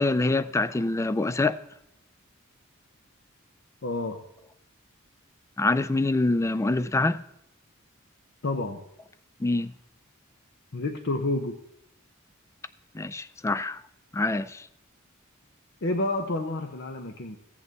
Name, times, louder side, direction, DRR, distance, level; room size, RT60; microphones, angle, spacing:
voice 1, 0.0-1.6 5.6-7.2 9.4-9.7 12.9-13.8 14.1-14.6, left 2 dB, 15° left, 0.3 m, -25 dB
voice 2, 3.8-4.2 8.4-8.8 10.7-11.6 15.8-17.4, left 2 dB, 55° left, 0.7 m, -29 dB
15.0 x 8.5 x 4.0 m
head